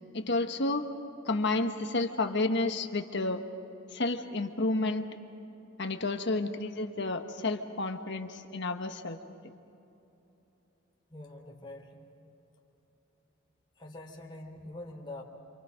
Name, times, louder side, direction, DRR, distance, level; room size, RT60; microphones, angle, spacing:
voice 1, 0.1-0.8 1.3-3.4 3.9-5.0 5.8-9.2, left 2 dB, 55° left, 5 dB, 1.5 m, -30 dB
voice 2, 11.1-12.0 13.8-15.2, left 1 dB, 25° left, 0 dB, 3.2 m, -44 dB
28.0 x 28.0 x 5.3 m, 3.0 s
head